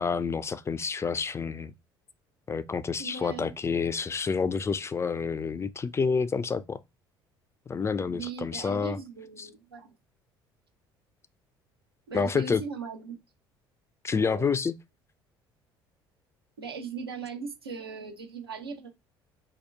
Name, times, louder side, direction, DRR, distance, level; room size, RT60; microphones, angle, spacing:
voice 1, 0.0-1.7 2.5-6.8 7.7-9.0 9.4-9.5 12.1-12.6 14.0-14.7, left 5 dB, 20° left, 0.3 m, -28 dB
voice 2, 3.0-3.5 8.1-9.9 12.1-13.2 14.1-14.5 16.6-18.9, right 5 dB, 85° right, 0.7 m, -39 dB
2.9 x 2.2 x 3.3 m
figure-of-eight pair, 55°, 12 cm